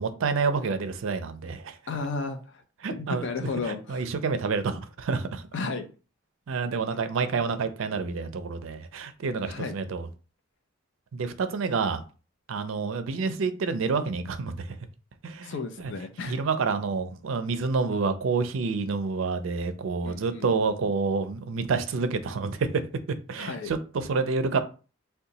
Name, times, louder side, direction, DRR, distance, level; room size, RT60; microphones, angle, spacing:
voice 1, 0.0-1.8 2.8-3.3 3.7-5.4 6.5-10.1 11.1-12.0 12.5-14.5 15.2-15.9 16.3-22.7 23.1-24.6, right 4 dB, 70° right, 0.4 m, -28 dB
voice 2, 1.9-2.6 2.9-4.0 5.5-5.9 9.4-9.8 15.4-16.4 20.0-20.5 23.3-23.7, left 3 dB, 60° left, 0.5 m, -33 dB
2.7 x 2.2 x 3.9 m
head